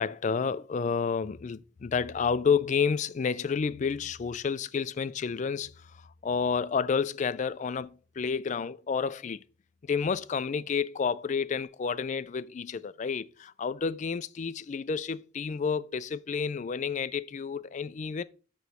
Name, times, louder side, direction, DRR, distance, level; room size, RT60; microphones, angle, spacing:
voice 1, 0.0-7.9 8.2-9.4 9.8-18.2, left 6 dB, 35° left, 0.3 m, -30 dB
9.3 x 3.2 x 6.1 m
head